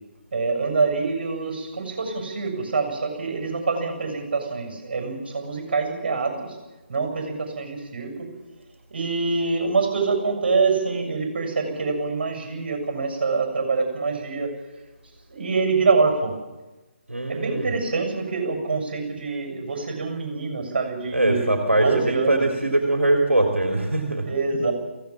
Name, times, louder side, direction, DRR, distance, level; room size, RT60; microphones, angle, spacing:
voice 1, 0.3-6.6 6.9-8.3 8.9-14.5 15.3-16.3 17.3-22.5 24.3-24.7, right 4 dB, 45° right, 4 dB, 7.0 m, -25 dB
voice 2, 17.1-17.7 21.1-24.3, right 2 dB, 75° right, 3 dB, 3.1 m, -22 dB
23.5 x 16.5 x 7.5 m, 1.1 s
figure-of-eight pair, 145°, 7 cm